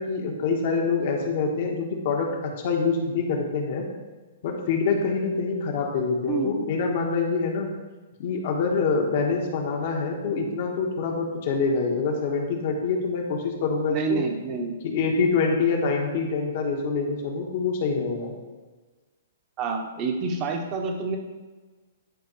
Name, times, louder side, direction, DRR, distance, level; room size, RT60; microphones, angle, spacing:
voice 1, 0.0-2.3 2.6-3.8 4.4-7.7 8.2-14.2 14.8-18.3, left 4 dB, 55° left, 1 dB, 1.4 m, -25 dB
voice 2, 13.9-14.7 19.6-21.2, right 4 dB, 35° right, 3 dB, 1.2 m, -28 dB
10.5 x 4.4 x 3.3 m, 1.3 s
hypercardioid pair, 130°, 0 cm